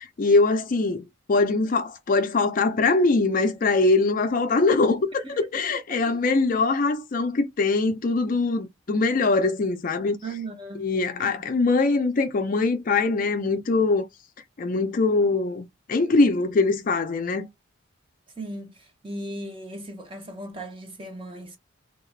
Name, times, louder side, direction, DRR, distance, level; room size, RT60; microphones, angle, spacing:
voice 1, 0.0-10.2 10.8-14.0 14.6-17.5, left 3 dB, 40° left, 0.4 m, -22 dB
voice 2, 10.2-10.9 11.2-11.5 18.4-21.6, right 2 dB, 25° right, 0.6 m, -37 dB
2.8 x 2.3 x 3.1 m
head